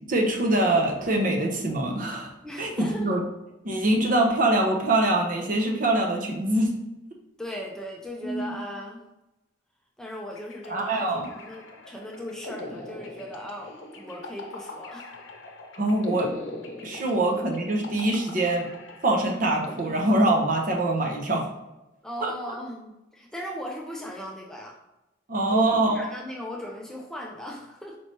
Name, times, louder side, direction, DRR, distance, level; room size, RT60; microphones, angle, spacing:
voice 1, 0.1-2.3 2.6-3.2 3.6-6.7 8.2-8.6 10.7-11.3 15.7-16.3 16.8-18.7 19.0-21.5 22.2-22.3 25.3-26.0, right 2 dB, 45° right, 1 dB, 0.7 m, -24 dB
voice 2, 2.4-3.2 7.4-9.0 10.0-15.1 17.0-17.2 22.0-24.8 25.5-28.0, left 1 dB, 5° left, -2 dB, 0.4 m, -38 dB
sound 1, 10.3-20.8, left 2 dB, 90° left, 0.6 m, -41 dB
4.3 x 3.1 x 2.8 m, 0.97 s
head